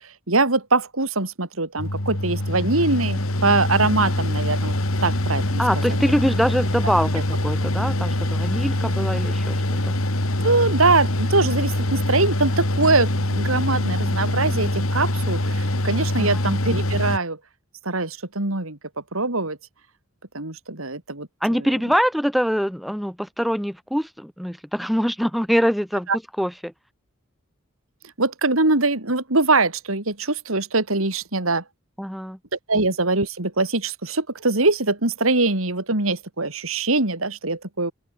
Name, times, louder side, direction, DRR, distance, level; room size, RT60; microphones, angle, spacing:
voice 1, 0.3-4.8 5.0-5.6 10.4-17.4 17.9-18.8 19.1-19.6 20.3-21.7 26.1-26.2 28.2-31.6 32.7-37.9, right 3 dB, 80° right, 3.8 m, -22 dB
Mechanical fan, 1.8-17.2, left 1 dB, 85° left, 3.5 m, -24 dB
voice 2, 5.6-9.9 16.2-16.4 21.4-26.1 26.4-26.7 32.0-32.4, equal, ahead, 6.8 m, -24 dB
open air
head